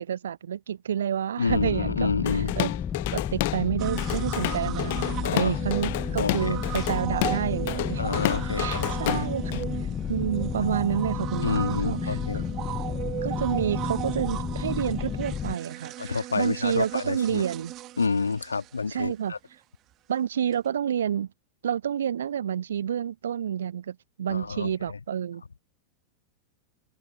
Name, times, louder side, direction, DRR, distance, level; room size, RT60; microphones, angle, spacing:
voice 1, 0.0-2.1 2.6-2.7 3.1-8.1 8.6-9.6 10.1-12.2 13.2-17.7 18.9-19.3 20.1-21.3 21.6-25.4, right 9 dB, 65° right, 0.8 m, -29 dB
voice 2, 1.4-2.5 5.2-5.5 6.2-6.6 8.0-9.3 11.4-12.4 16.0-17.4 18.0-19.4 24.3-25.0, left 4 dB, 75° left, 2.4 m, -29 dB
sound 1, 1.5-15.6, left 8 dB, 25° left, 0.4 m, -32 dB
Drum kit / Drum, 2.3-3.6 4.0-9.6, left 21 dB, 50° left, 0.8 m, -30 dB
sound 2, 3.8-19.1 20.5-20.6, right 15 dB, 35° right, 1.1 m, -36 dB
figure-of-eight pair, 90°, 0 cm